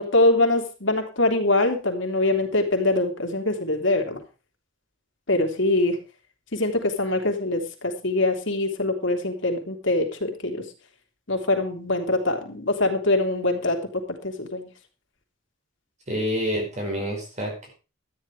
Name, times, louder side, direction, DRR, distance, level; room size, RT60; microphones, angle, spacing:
voice 1, 0.0-4.2 5.3-6.0 6.5-10.6 11.3-13.8 14.1-14.7, left 2 dB, 65° left, 4 dB, 2.9 m, -23 dB
voice 2, 16.1-17.7, equal, 35° right, 1 dB, 5.1 m, -28 dB
13.0 x 10.5 x 4.8 m, 0.32 s
head